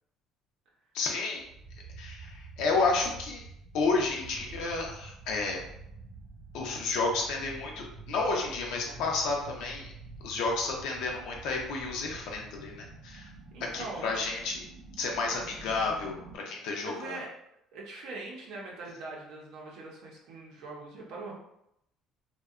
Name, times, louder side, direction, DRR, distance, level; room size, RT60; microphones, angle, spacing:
voice 1, 0.9-1.4 2.0-3.4 3.7-5.6 6.5-9.9 10.2-13.3 13.7-14.6 15.0-17.2, left 3 dB, 75° left, 0 dB, 0.5 m, -31 dB
sound 1, 1.4-16.4, right 3 dB, 20° right, 0.8 m, -48 dB
voice 2, 13.5-14.1 16.8-17.3 17.7-21.4, right 3 dB, 70° right, -2 dB, 0.6 m, -42 dB
2.6 x 2.1 x 2.4 m, 0.78 s
cardioid pair, 160°, 0 cm